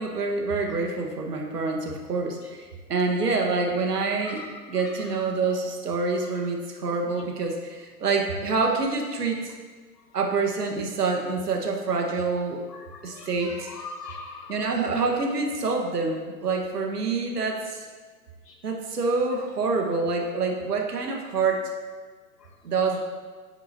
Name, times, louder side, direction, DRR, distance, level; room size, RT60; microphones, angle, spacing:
voice 1, 0.0-9.5 10.1-12.6 13.0-13.7 14.5-17.8 18.6-21.7 22.6-23.0, right 4 dB, 75° right, 2 dB, 1.6 m, -27 dB
voice 2, 12.7-14.6 18.5-18.6, left 4 dB, 80° left, 3 dB, 1.4 m, -41 dB
9.1 x 8.2 x 2.8 m, 1.5 s
figure-of-eight pair, 120°, 47 cm